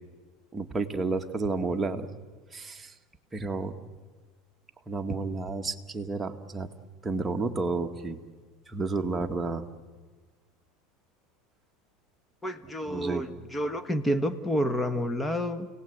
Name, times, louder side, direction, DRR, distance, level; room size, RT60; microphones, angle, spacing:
voice 1, 0.5-2.1 2.5-2.9 3.3-3.8 4.9-6.7 7.0-8.2 8.7-9.6 12.9-13.2, right 3 dB, 15° right, 4 dB, 1.7 m, -31 dB
voice 2, 12.4-15.7, equal, 15° left, 10 dB, 1.6 m, -29 dB
29.5 x 18.5 x 8.0 m, 1.4 s
supercardioid pair, 115°, 0 cm